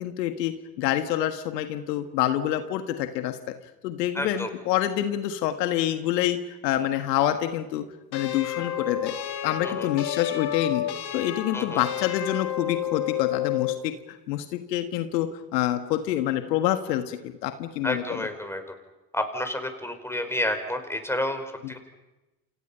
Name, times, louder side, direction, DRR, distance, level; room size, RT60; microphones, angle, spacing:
voice 1, 0.0-3.4 3.8-7.8 8.1-9.1 9.4-10.9 11.1-18.3 21.6-21.7, left 12 dB, 80° left, 8 dB, 1.7 m, -27 dB
voice 2, 4.1-4.5 9.6-9.9 11.5-11.8 17.8-18.6 19.1-21.8, left 1 dB, 5° left, 7 dB, 5.1 m, -30 dB
sound 1, 8.1-13.8, left 11 dB, 50° left, 3.5 m, -30 dB
29.5 x 27.5 x 5.7 m, 1.0 s
hypercardioid pair, 65°, 49 cm